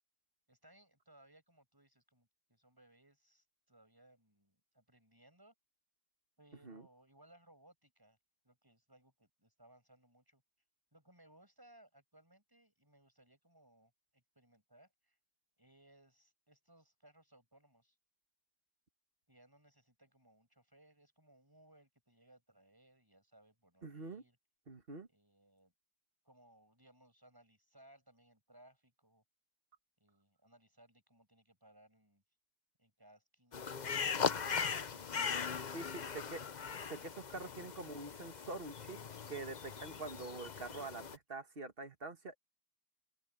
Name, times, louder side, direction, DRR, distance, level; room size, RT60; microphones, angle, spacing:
voice 1, 0.5-5.5 6.4-8.2 8.4-10.4 10.9-15.2 15.6-18.0 19.3-24.4 25.1-25.7 26.2-29.2 30.0-32.2 32.8-35.1 35.7-36.0, right 1 dB, 15° right, 7.8 m, -65 dB
voice 2, 23.8-24.2 24.7-25.1 35.7-36.4 36.9-39.0 39.3-42.4, right 3 dB, 40° right, 1.9 m, -45 dB
sound 1, 33.5-41.2, left 6 dB, 40° left, 0.7 m, -39 dB
open air
omnidirectional pair, 1.6 m